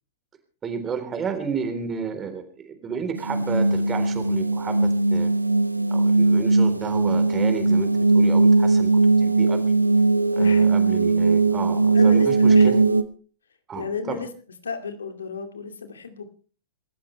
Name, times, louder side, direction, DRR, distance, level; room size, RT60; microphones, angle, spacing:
voice 1, 0.6-5.3 5.9-8.9 9.2-9.6 10.3-12.7 13.7-14.2, right 6 dB, 20° right, 7 dB, 3.8 m, -32 dB
sound 1, 3.2-13.0, right 3 dB, 90° right, 1.0 m, -19 dB
voice 2, 10.3-10.7 11.9-12.7 13.7-14.3 14.6-16.3, left 5 dB, 70° left, 7 dB, 2.5 m, -33 dB
27.0 x 14.5 x 3.3 m, 0.40 s
figure-of-eight pair, 100°, 0 cm